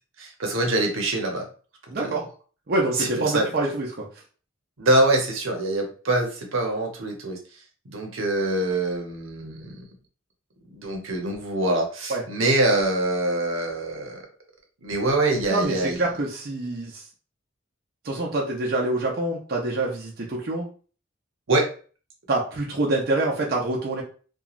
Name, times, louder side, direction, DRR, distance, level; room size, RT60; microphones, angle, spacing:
voice 1, 0.2-1.5 2.0-2.1 2.9-3.5 4.8-7.4 7.8-9.9 10.7-14.2 14.8-16.0 21.5-21.7, right 2 dB, 90° right, 2 dB, 0.8 m, -24 dB
voice 2, 1.9-2.2 2.7-4.1 12.1-12.2 15.5-17.0 18.0-20.7 22.3-24.0, right 2 dB, 50° right, -2 dB, 0.6 m, -26 dB
3.0 x 2.3 x 2.4 m, 0.39 s
head